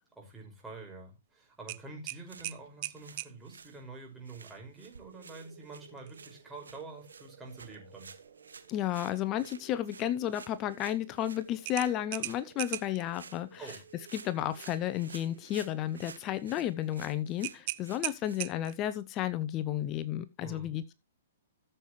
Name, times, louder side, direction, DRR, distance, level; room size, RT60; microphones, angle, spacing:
voice 1, 0.2-8.1 13.6-13.8 20.4-20.7, right 3 dB, 10° right, 5.4 m, -47 dB
sound 1, 1.7-3.3 6.0-6.2 6.6-6.7 11.6-13.0 17.4-18.9, right 19 dB, 45° right, 0.6 m, -38 dB
sound 2, 2.2-18.9, right 5 dB, 85° right, 1.3 m, -54 dB
sound 3, 5.0-17.8, right 8 dB, 60° right, 4.9 m, -57 dB
voice 2, 8.7-13.6 14.1-20.9, left 12 dB, 30° left, 0.8 m, -32 dB
14.5 x 7.4 x 3.1 m
hypercardioid pair, 130°, 0 cm